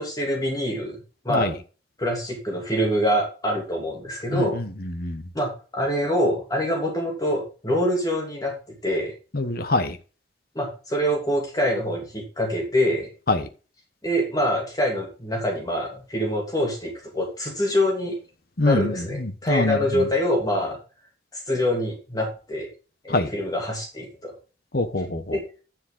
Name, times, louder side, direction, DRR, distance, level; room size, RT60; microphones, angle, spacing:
voice 1, 0.0-1.5 2.0-4.6 5.3-9.1 10.5-13.1 14.0-18.2 18.6-20.8 21.3-22.7 23.0-24.3 25.3-25.4, equal, 20° left, 2.7 m, -25 dB
voice 2, 9.3-9.9 13.3-13.4 18.6-18.9 19.5-19.8 23.1-23.3 24.7-25.2, left 2 dB, 55° left, 1.1 m, -23 dB
10.0 x 7.1 x 3.8 m
head